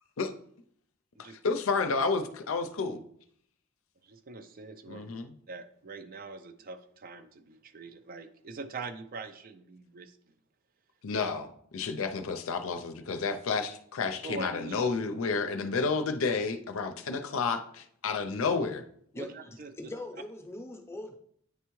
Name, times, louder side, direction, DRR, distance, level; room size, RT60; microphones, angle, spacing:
voice 1, 1.4-3.0 4.9-5.3 11.0-18.8, left 4 dB, 85° left, 8 dB, 0.5 m, -30 dB
voice 2, 4.0-5.1 5.5-10.2 14.2-14.9 19.2-19.7, right 3 dB, 45° right, 9 dB, 0.4 m, -43 dB
voice 3, 19.1-21.2, left 1 dB, 15° left, 2 dB, 0.6 m, -42 dB
9.3 x 3.4 x 3.1 m, 0.66 s
head